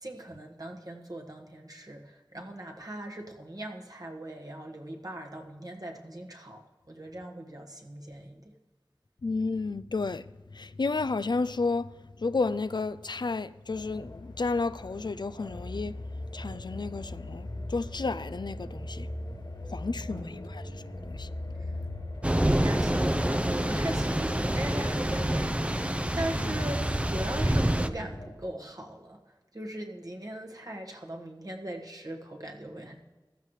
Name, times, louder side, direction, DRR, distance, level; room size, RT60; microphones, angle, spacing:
voice 1, 0.0-8.4 20.1-20.3 22.5-29.2 29.5-33.1, right 1 dB, 50° right, 1.6 m, -40 dB
voice 2, 9.2-10.2 10.5-11.9 12.2-15.9 16.3-19.1 19.7-20.6 21.0-21.3 26.4-26.6, left 3 dB, 70° left, 0.4 m, -31 dB
sound 1, 13.7-28.3, left 1 dB, 90° left, 3.1 m, -40 dB
Thunder / Rain, 22.2-27.9, right 1 dB, 15° right, 0.6 m, -27 dB
15.0 x 13.0 x 3.2 m
wide cardioid pair, 45°, 8 cm